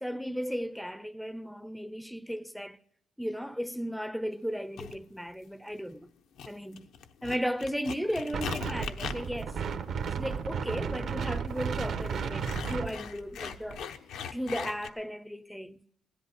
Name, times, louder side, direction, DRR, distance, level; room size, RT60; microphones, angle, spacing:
voice 1, 0.0-2.8 3.2-6.1 6.4-6.9 7.2-9.5 10.2-13.8 14.3-16.0, equal, ahead, 0.5 m, -35 dB
sound 1, 4.8-5.0 5.7-6.1 6.4-14.9, left 7 dB, 80° left, 0.9 m, -41 dB
Wind, 8.3-13.8, right 6 dB, 65° right, 1.0 m, -34 dB
16.0 x 11.0 x 5.9 m
cardioid pair, 90°, 0 cm